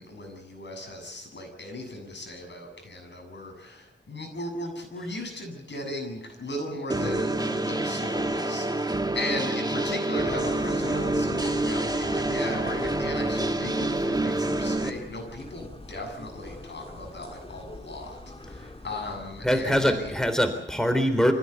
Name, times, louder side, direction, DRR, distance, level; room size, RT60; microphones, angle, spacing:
voice 1, 0.0-20.1, left 1 dB, 65° left, 4 dB, 7.4 m, -36 dB
sound 1, 6.9-14.9, right 2 dB, 20° right, 2.0 m, -27 dB
sound 2, 10.3-20.3, left 2 dB, 30° left, 2.0 m, -43 dB
voice 2, 19.4-21.3, equal, 5° left, 8 dB, 3.6 m, -23 dB
26.0 x 16.0 x 8.3 m, 0.80 s
cardioid pair, 65°, 19 cm